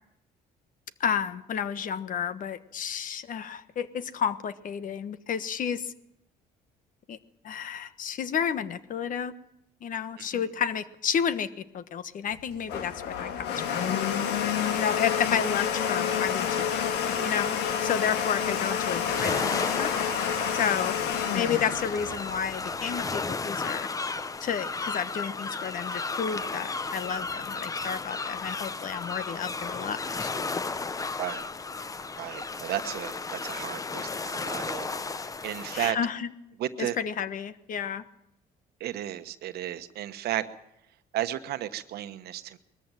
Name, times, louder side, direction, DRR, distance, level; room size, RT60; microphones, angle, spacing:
voice 1, 1.0-5.9 7.1-7.2 7.4-9.3 9.8-11.5 11.7-14.0 14.7-16.7 17.2-19.9 20.5-20.9 21.3-23.9 24.4-30.3 35.7-36.3 36.8-38.0, left 7 dB, 50° left, 13 dB, 1.3 m, -31 dB
Domestic sounds home sounds, 12.3-23.0, left 8 dB, 85° left, 1.7 m, -29 dB
sound 1, 19.0-35.9, left 4 dB, 20° left, 0.7 m, -34 dB
voice 2, 32.2-34.9 35.4-36.0 36.6-37.0 38.8-40.5 41.1-42.6, right 13 dB, 70° right, 10 dB, 1.2 m, -33 dB
21.5 x 14.0 x 9.0 m, 0.82 s
cardioid pair, 110°, 17 cm